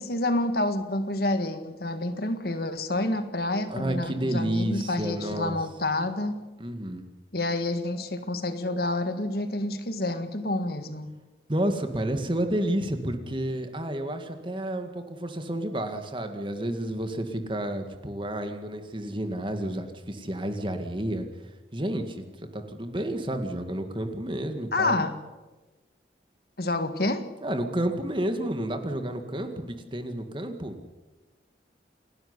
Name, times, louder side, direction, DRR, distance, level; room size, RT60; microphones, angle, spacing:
voice 1, 0.0-6.4 7.3-11.1 24.7-25.1 26.6-27.2, left 2 dB, 55° left, 9 dB, 1.8 m, -28 dB
voice 2, 3.7-5.6 6.6-7.1 11.5-25.0 27.4-30.8, right 1 dB, 25° right, 7 dB, 2.1 m, -30 dB
28.5 x 12.5 x 9.7 m, 1.2 s
head